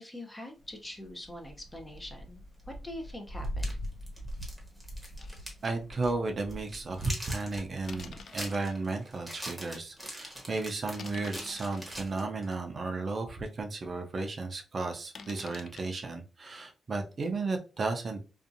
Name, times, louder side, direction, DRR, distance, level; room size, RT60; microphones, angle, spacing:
voice 1, 0.0-3.8, left 1 dB, 15° left, 3 dB, 0.6 m, -44 dB
sound 1, 0.6-8.2, equal, 85° left, 1.4 m, -42 dB
sound 2, 2.6-2.7 3.4-5.7 5.9-6.1 6.5-12.6, equal, 5° right, 1.1 m, -43 dB
sound 3, 5.2-5.4 5.9-6.0 7.0-7.3 7.9-8.7 9.4-9.5 10.0-10.2 10.9-11.9 12.6-12.7 13.1-13.2 13.5-13.6 15.1-15.8, left 5 dB, 70° left, 0.3 m, -48 dB
voice 2, 5.6-18.2, right 3 dB, 45° right, 4 dB, 0.5 m, -34 dB
2.6 x 2.4 x 2.5 m, 0.33 s
cardioid pair, 90°, 0 cm